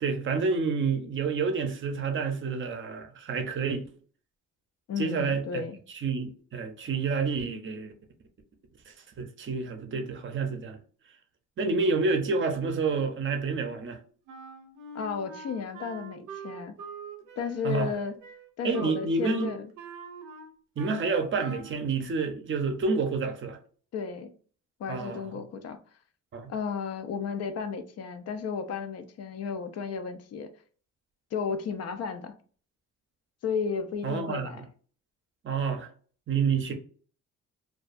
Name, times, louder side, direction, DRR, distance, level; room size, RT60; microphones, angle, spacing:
voice 1, 0.0-3.9 5.0-7.9 8.9-10.8 11.6-14.0 17.6-17.9 18.6-19.5 20.8-23.6 24.9-25.2 26.3-26.5 34.0-34.5 35.4-35.9 36.3-36.7, right 4 dB, 40° right, 0.5 m, -29 dB
voice 2, 4.9-5.8 14.9-16.7 17.4-18.2 18.6-19.7 23.9-24.3 24.8-25.8 26.5-30.5 31.3-32.3 33.4-34.6, left 6 dB, 55° left, 0.4 m, -33 dB
Wind instrument woodwind instrument, 14.3-21.1 21.4-21.8, right 4 dB, 90° right, 0.5 m, -43 dB
2.3 x 2.3 x 2.5 m
cardioid pair, 90°, 30 cm